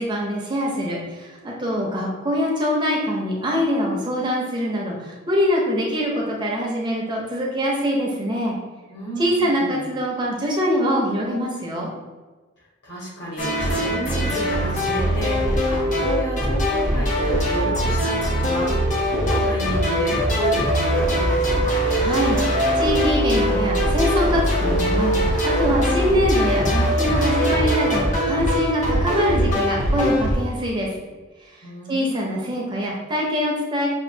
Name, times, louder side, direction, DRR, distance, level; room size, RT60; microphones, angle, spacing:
voice 1, 0.0-8.6 9.2-11.9 22.0-30.9 31.9-33.9, equal, 20° right, -2 dB, 0.6 m, -24 dB
voice 2, 8.9-9.8 12.6-21.7 31.6-32.4, right 1 dB, 55° left, -5 dB, 1.3 m, -31 dB
sound 1, 13.4-30.3, equal, 35° left, 0.8 m, -21 dB
5.8 x 2.4 x 2.6 m, 1.3 s
head